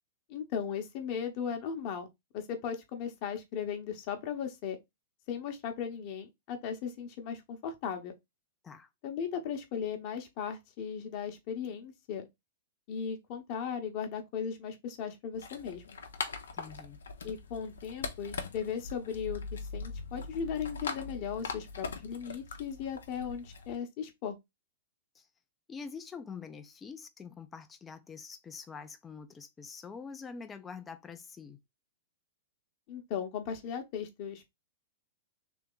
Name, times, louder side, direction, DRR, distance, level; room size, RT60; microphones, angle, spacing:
voice 1, 0.3-2.1 2.3-4.8 5.3-8.1 9.0-12.3 12.9-16.0 17.2-24.4 32.9-34.5, left 7 dB, 45° left, 1.0 m, -37 dB
sound 1, 15.3-23.8, left 4 dB, 85° left, 0.8 m, -41 dB
voice 2, 16.5-17.0 25.1-25.3 25.7-31.6, left 5 dB, 15° left, 0.6 m, -45 dB
3.4 x 2.9 x 3.9 m
hypercardioid pair, 125°, 0 cm